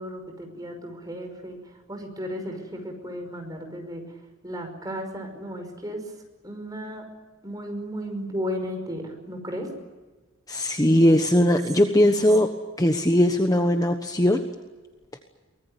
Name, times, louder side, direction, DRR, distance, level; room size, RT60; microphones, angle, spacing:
voice 1, 0.0-1.6 1.9-4.0 4.4-6.1 6.4-7.0 7.4-9.7, equal, 15° right, 4 dB, 5.5 m, -34 dB
voice 2, 10.5-12.5 12.8-14.4 15.1-15.2, left 1 dB, 15° left, 5 dB, 1.2 m, -20 dB
24.0 x 20.0 x 9.8 m, 1.3 s
head